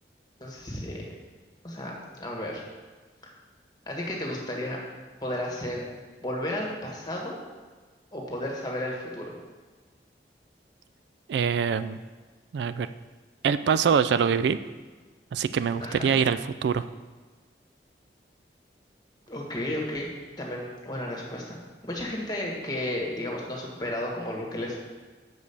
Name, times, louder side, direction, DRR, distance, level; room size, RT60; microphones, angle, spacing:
voice 1, 0.4-1.1 1.6-2.6 3.9-4.8 5.2-5.8 6.2-7.4 8.1-9.3 15.8-16.1 19.3-20.1 20.4-21.6 21.8-24.8, left 1 dB, 25° left, -1 dB, 1.5 m, -33 dB
voice 2, 11.3-12.0 12.5-12.9 13.4-14.6 15.3-16.9, right 7 dB, 80° right, 13 dB, 0.3 m, -24 dB
6.2 x 5.2 x 7.0 m, 1.4 s
head